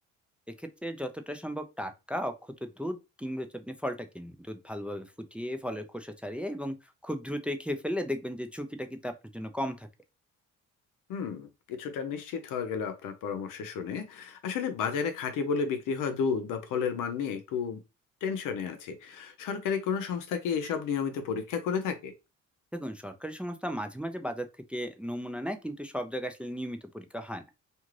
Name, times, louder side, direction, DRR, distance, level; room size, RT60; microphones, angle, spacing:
voice 1, 0.6-2.3 2.6-6.7 7.0-9.9 22.7-27.4, equal, 5° right, 0.4 m, -35 dB
voice 2, 11.1-17.8 18.2-22.1, left 6 dB, 80° left, 0.7 m, -32 dB
2.5 x 2.4 x 3.1 m
cardioid pair, 85°, 31 cm